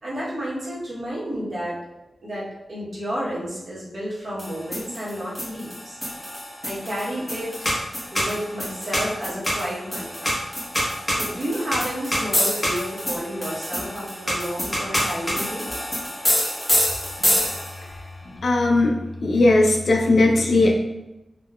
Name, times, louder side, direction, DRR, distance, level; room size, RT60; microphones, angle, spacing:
voice 1, 0.0-1.8 2.2-6.0 6.6-7.5 8.1-10.4 11.1-15.7, equal, 45° right, -7 dB, 0.9 m, -31 dB
sound 1, 4.4-17.9, equal, 15° left, 0.8 m, -26 dB
voice 2, 18.3-18.9 19.2-20.7, left 2 dB, 60° left, 0 dB, 0.3 m, -18 dB
3.6 x 2.2 x 2.2 m, 0.96 s
wide cardioid pair, 155°, 0 cm